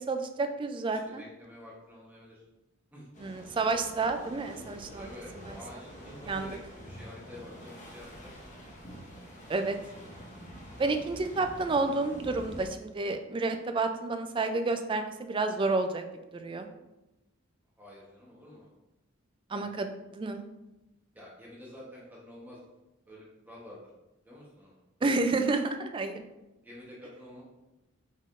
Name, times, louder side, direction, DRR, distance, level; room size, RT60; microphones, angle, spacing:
voice 1, 0.1-1.2 3.2-5.1 5.4-5.6 6.3-6.5 9.5-9.8 10.8-16.0 16.3-16.7 19.5-19.9 20.1-20.4 25.0-26.2, right 3 dB, 25° right, 7 dB, 0.3 m, -30 dB
voice 2, 0.9-2.4 2.9-3.1 5.0-8.3 17.8-18.7 19.5-19.7 21.1-22.6 23.1-23.9 24.2-24.8 26.5-27.4, left 1 dB, 10° right, -5 dB, 1.0 m, -49 dB
sound 1, 3.1-12.7, equal, 35° left, 0.8 m, -47 dB
5.4 x 3.6 x 2.5 m, 0.98 s
head